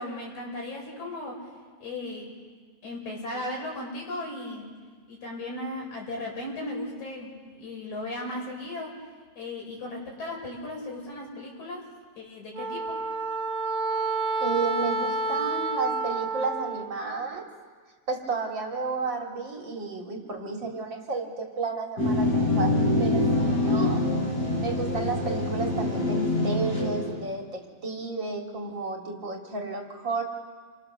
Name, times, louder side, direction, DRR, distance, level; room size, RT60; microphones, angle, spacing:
voice 1, 0.0-1.5 1.8-2.3 2.8-4.7 5.1-9.0 9.4-11.9 12.2-13.0, left 1 dB, 85° left, -1 dB, 7.1 m, -36 dB
Wind instrument woodwind instrument, 12.5-17.0, right 3 dB, 85° right, 0.7 m, -29 dB
voice 2, 14.4-17.5 18.1-24.0 24.6-30.2, right 4 dB, 40° right, 1 dB, 3.0 m, -32 dB
sound 1, 22.0-27.2, left 2 dB, 35° left, 6.4 m, -25 dB
28.5 x 22.5 x 6.8 m, 1.5 s
omnidirectional pair, 3.3 m